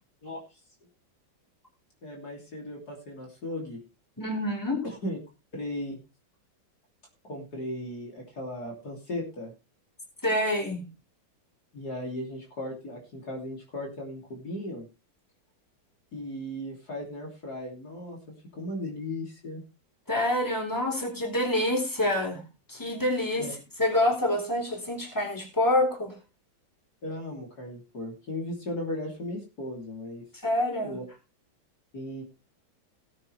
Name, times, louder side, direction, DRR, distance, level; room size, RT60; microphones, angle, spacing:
voice 1, 0.2-0.6 2.0-3.8 4.8-5.2 5.5-6.0 7.2-9.5 11.7-14.9 16.1-18.2 18.5-19.6 23.4-23.5 27.0-30.2 30.8-31.0 31.9-32.2, left 1 dB, 50° left, 0 dB, 3.6 m, -36 dB
voice 2, 4.2-4.8 10.2-10.8 20.1-22.4 22.7-23.5 23.8-26.1 30.4-30.9, left 1 dB, 10° left, 2 dB, 4.0 m, -26 dB
18.0 x 8.7 x 3.3 m, 0.29 s
omnidirectional pair, 2.1 m